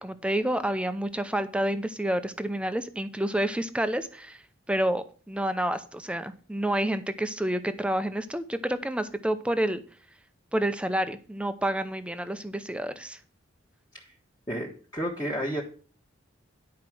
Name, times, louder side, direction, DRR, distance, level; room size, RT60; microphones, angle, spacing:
voice 1, 0.0-4.4 4.7-9.8 10.5-13.2, right 1 dB, 5° right, 11 dB, 0.6 m, -29 dB
voice 2, 14.5-15.6, equal, 20° left, -3 dB, 1.4 m, -31 dB
10.5 x 4.8 x 6.2 m, 0.39 s
head